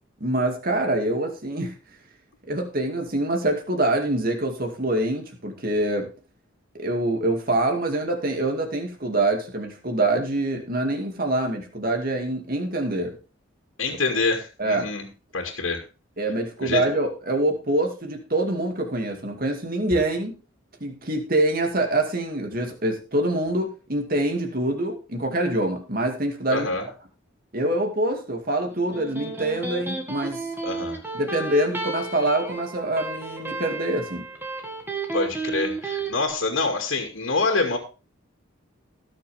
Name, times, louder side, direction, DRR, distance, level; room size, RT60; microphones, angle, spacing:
voice 1, 0.2-1.7 2.5-6.1 6.7-13.2 14.6-14.9 16.2-20.4 20.8-26.7 27.5-30.5 31.1-34.3, right 1 dB, 45° right, 3 dB, 2.3 m, -25 dB
voice 2, 13.8-15.1 15.3-15.8 16.6-16.8 26.5-26.9 30.6-31.0 35.1-37.8, left 3 dB, 80° left, 1 dB, 2.3 m, -26 dB
Electric guitar, 28.7-36.1, right 3 dB, 10° right, 2.0 m, -32 dB
19.0 x 6.6 x 3.5 m, 0.32 s
head